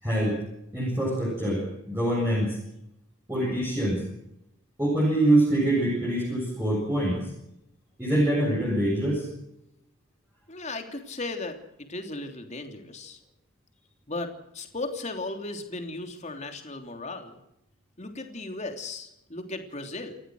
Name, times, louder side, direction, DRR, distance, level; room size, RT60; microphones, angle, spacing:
voice 1, 0.0-0.4 0.7-2.6 3.3-4.0 4.8-7.2 8.0-9.3, right 1 dB, 10° right, -5 dB, 7.8 m, -24 dB
voice 2, 10.5-11.6 11.9-13.2 14.1-17.4 18.0-20.2, left 2 dB, 35° left, 5 dB, 3.3 m, -36 dB
29.5 x 15.0 x 6.4 m, 0.82 s
head